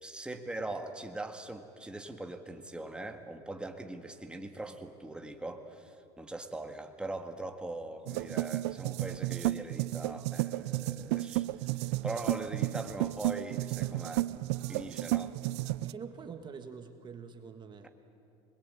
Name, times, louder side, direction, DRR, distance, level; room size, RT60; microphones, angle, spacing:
voice 1, 0.0-14.3 14.7-15.4, right 2 dB, 5° right, 5 dB, 1.8 m, -41 dB
sound 1, 8.1-15.9, right 17 dB, 80° right, 0.6 m, -33 dB
voice 2, 15.8-17.9, right 6 dB, 30° right, 7 dB, 1.5 m, -45 dB
26.0 x 21.0 x 8.7 m, 2.8 s
supercardioid pair, 110°, 14 cm